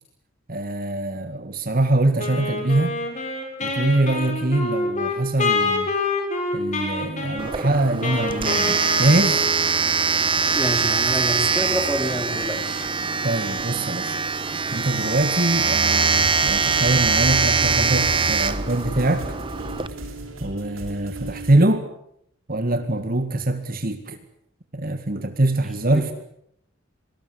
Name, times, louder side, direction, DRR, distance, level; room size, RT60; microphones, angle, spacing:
voice 1, 0.5-2.9 3.6-5.9 6.5-9.4 13.2-14.2 14.7-19.3 20.4-21.9 22.5-24.2 24.7-26.1, right 1 dB, 45° right, 8 dB, 1.9 m, -23 dB
Wind instrument woodwind instrument, 2.2-9.9, left 3 dB, 35° left, 6.0 m, -27 dB
Domestic sounds home sounds, 7.4-19.9, right 5 dB, 25° right, 1.1 m, -22 dB
voice 2, 10.5-12.9 25.9-26.1, equal, ahead, 4 dB, 3.7 m, -27 dB
sound 1, 16.2-21.6, right 1 dB, 85° right, 7.5 m, -35 dB
26.5 x 19.5 x 8.1 m, 0.72 s
head